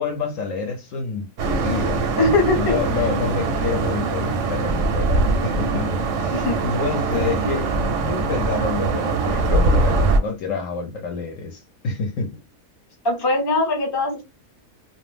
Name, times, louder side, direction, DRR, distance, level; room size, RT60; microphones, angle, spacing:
voice 1, 0.0-2.1 2.5-12.4, left 5 dB, 65° left, 0.9 m, -28 dB
sound 1, 1.4-10.2, right 3 dB, 65° right, 0.8 m, -22 dB
voice 2, 2.2-2.8 6.3-6.6 7.1-7.6 13.0-14.2, left 2 dB, 30° left, 0.5 m, -22 dB
2.5 x 2.0 x 3.2 m
omnidirectional pair, 1.7 m